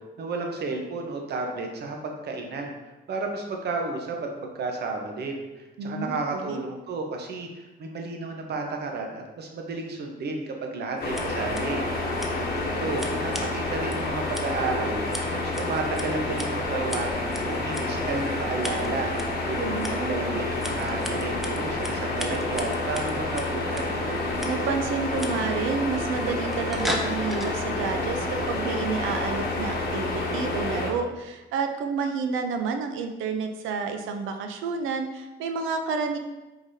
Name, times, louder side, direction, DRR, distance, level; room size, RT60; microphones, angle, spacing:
voice 1, 0.0-2.7 3.1-11.8 12.4-15.0 15.3-19.1 19.5-24.0, right 3 dB, 55° right, 2 dB, 0.8 m, -32 dB
voice 2, 5.8-6.6 19.6-20.4 24.5-36.2, right 5 dB, 85° right, 6 dB, 0.5 m, -30 dB
sound 1, 11.0-30.9, left 2 dB, 50° left, 1.0 m, -29 dB
Scissors, 11.0-27.5, equal, ahead, 0.6 m, -40 dB
4.7 x 3.9 x 2.7 m, 1.1 s
cardioid pair, 90°, 20 cm